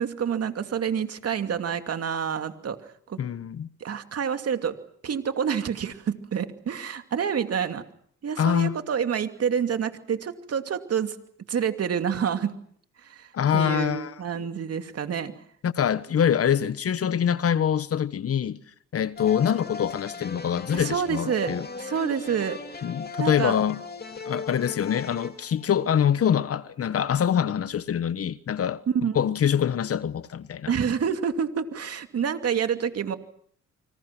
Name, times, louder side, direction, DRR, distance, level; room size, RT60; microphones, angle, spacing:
voice 1, 0.0-2.8 3.1-3.2 3.8-4.7 5.0-7.8 8.2-11.1 11.5-12.5 13.0-15.3 20.7-22.6 23.2-23.6 28.9-29.1 30.7-33.2, right 7 dB, 55° right, 2.6 m, -28 dB
voice 2, 3.2-3.7 8.4-8.7 13.3-14.1 15.6-18.6 18.9-21.7 22.8-23.8 24.1-28.8 29.1-30.7, left 8 dB, 50° left, 1.2 m, -25 dB
sound 1, 19.2-26.2, left 4 dB, 30° left, 3.0 m, -37 dB
29.0 x 25.5 x 6.1 m
cardioid pair, 90°, 30 cm